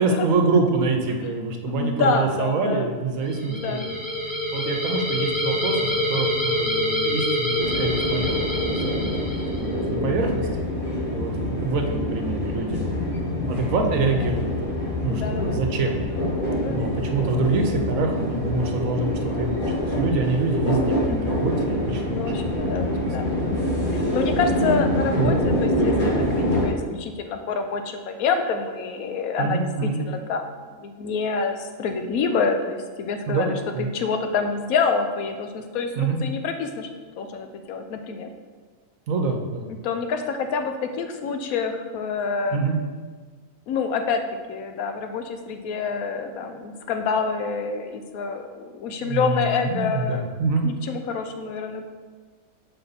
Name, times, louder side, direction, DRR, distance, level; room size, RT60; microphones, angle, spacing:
voice 1, 0.0-3.9 4.5-9.2 9.5-10.5 11.1-12.9 13.4-14.5 15.0-16.0 16.7-19.6 20.0-22.8 25.1-25.3 29.4-30.0 33.3-33.9 36.0-36.2 39.1-39.7 42.5-42.8 49.0-50.7, right 3 dB, 70° right, 3 dB, 1.2 m, -26 dB
voice 2, 1.7-2.9 3.5-3.9 10.0-10.3 15.1-15.6 16.6-16.8 21.1-21.4 22.1-23.3 23.9-36.9 37.2-38.3 39.8-42.6 43.7-44.2 44.5-50.2 50.6-51.8, left 5 dB, 90° left, 6 dB, 1.1 m, -27 dB
sound 1, 3.3-9.7, left 1 dB, 15° left, 1.5 m, -26 dB
sound 2, 7.6-26.7, left 1 dB, 40° left, 1.5 m, -25 dB
6.7 x 4.2 x 4.0 m, 1.5 s
omnidirectional pair, 1.4 m